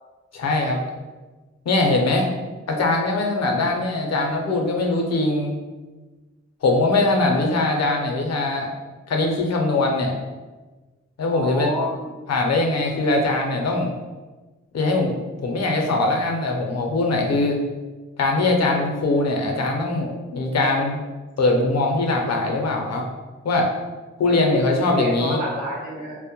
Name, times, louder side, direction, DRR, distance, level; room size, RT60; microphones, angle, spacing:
voice 1, 0.3-0.8 1.7-2.3 2.7-5.6 6.6-8.7 9.1-10.1 11.2-11.7 12.3-13.9 14.7-15.2 15.4-17.6 18.2-21.0 21.4-23.1 23.4-23.7 24.2-25.4, left 2 dB, 60° left, 2 dB, 0.5 m, -21 dB
voice 2, 11.3-12.1 20.7-20.9 24.3-26.2, left 1 dB, 75° right, -6 dB, 0.8 m, -29 dB
2.1 x 2.1 x 2.8 m, 1.2 s
supercardioid pair, 45°, 29 cm